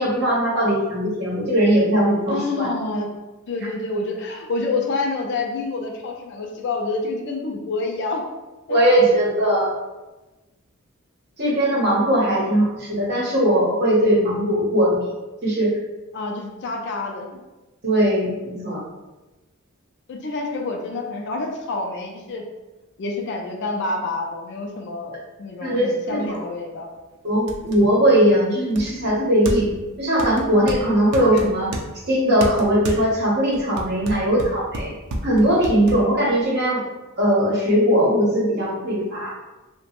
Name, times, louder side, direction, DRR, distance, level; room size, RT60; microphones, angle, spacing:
voice 1, 0.0-2.7 8.7-9.7 11.4-15.1 15.4-15.7 17.8-18.8 25.6-26.4 27.2-29.7 30.0-31.7 32.1-34.9 35.2-36.8 37.2-39.3, right 1 dB, 50° right, -5 dB, 0.9 m, -19 dB
voice 2, 2.3-3.1 3.5-8.2 8.7-8.8 12.2-12.5 16.1-17.4 20.1-22.5 23.0-25.1 25.4-26.9 34.0-34.3, left 3 dB, 55° left, 2 dB, 0.4 m, -28 dB
sound 1, 26.4-26.5 27.0-27.1 27.5-27.9 28.8-29.8 30.2-31.9 32.4-33.0 33.5-36.0, right 1 dB, 90° right, 0.4 m, -31 dB
2.9 x 2.1 x 2.9 m, 1.1 s
head